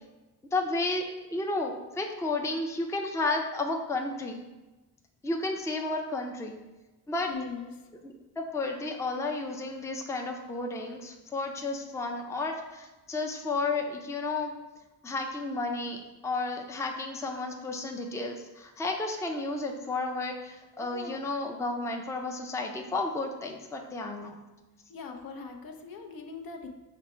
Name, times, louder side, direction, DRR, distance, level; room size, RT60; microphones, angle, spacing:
voice 1, 0.5-1.0 1.3-4.4 5.2-6.5 7.1-7.3 8.0-14.5 15.0-24.4, left 2 dB, 10° left, 3 dB, 0.4 m, -32 dB
voice 2, 7.3-7.9 24.9-26.7, left 4 dB, 60° left, 4 dB, 0.6 m, -40 dB
5.0 x 2.1 x 4.3 m, 1.1 s
cardioid pair, 70°, 39 cm